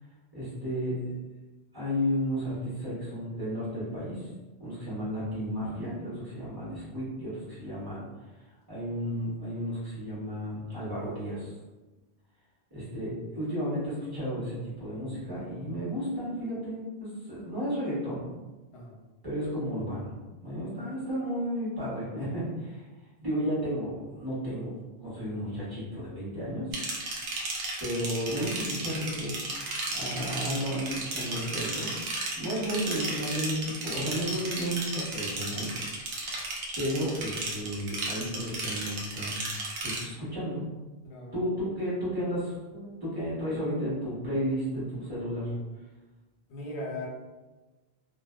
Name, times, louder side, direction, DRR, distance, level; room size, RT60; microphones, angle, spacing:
voice 1, 0.3-1.0 1.7-4.3 4.6-8.0 8.7-11.5 12.7-18.2 19.2-22.8 23.2-24.7 25.0-26.7 27.8-29.5 29.9-31.9 32.4-35.7 36.8-39.5 39.8-40.7 41.3-45.5, equal, 20° right, -11 dB, 1.2 m, -33 dB
sound 1, 26.7-40.0, right 2 dB, 75° right, 0.8 m, -34 dB
voice 2, 41.0-41.5 46.5-47.1, left 1 dB, 85° left, -2 dB, 0.9 m, -38 dB
2.5 x 2.1 x 2.3 m, 1.2 s
omnidirectional pair, 1.1 m